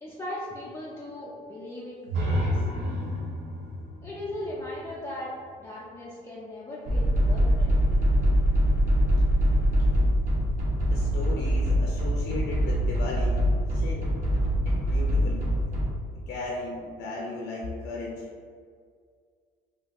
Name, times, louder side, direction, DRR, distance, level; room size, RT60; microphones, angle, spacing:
voice 1, 0.0-3.1 4.0-5.3 5.6-8.0, left 1 dB, 15° left, -8 dB, 0.5 m, -38 dB
sound 1, 2.1-5.9, equal, 80° right, 0.7 m, -31 dB
sound 2, 6.9-15.9, equal, 45° right, 0.9 m, -23 dB
voice 2, 10.8-14.1 14.7-15.5 16.1-18.3, left 2 dB, 85° left, -2 dB, 0.5 m, -36 dB
2.7 x 2.3 x 3.6 m, 2.1 s
cardioid pair, 110°, 17 cm